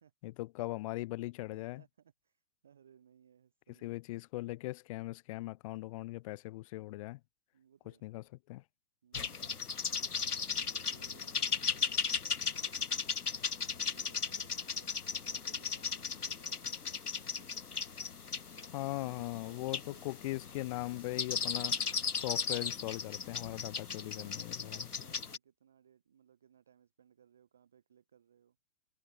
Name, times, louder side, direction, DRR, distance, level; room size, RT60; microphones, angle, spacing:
voice 1, 0.2-1.8 3.8-7.2 8.0-8.6 18.7-21.8 22.1-24.9, left 19 dB, 25° left, 1.1 m, -39 dB
voice 2, 1.5-4.0 7.5-8.0 9.0-9.6 10.6-13.2 13.8-17.6 18.5-20.0 24.0-28.6, right 8 dB, ahead, 0.4 m, -63 dB
sound 1, 9.1-25.4, left 5 dB, 85° left, 0.9 m, -37 dB
figure-of-eight pair, 125°, 44 cm